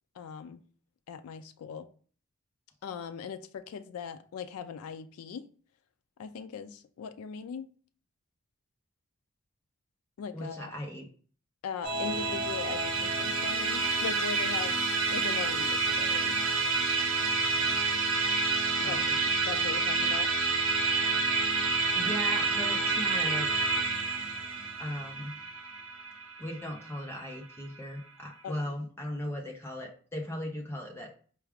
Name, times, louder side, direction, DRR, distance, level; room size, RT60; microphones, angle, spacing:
voice 1, 0.2-0.6 1.1-1.9 2.8-5.5 6.2-7.7 10.2-10.7 11.6-14.8 15.1-16.4 18.8-20.3 28.4-28.7, left 6 dB, 90° left, 0.3 m, -40 dB
voice 2, 10.3-11.1 18.8-19.1 21.9-23.5 24.8-25.4 26.4-31.1, equal, 10° left, 0.5 m, -37 dB
Musical instrument, 11.8-27.4, right 4 dB, 70° right, 0.9 m, -29 dB
4.5 x 2.3 x 3.4 m
head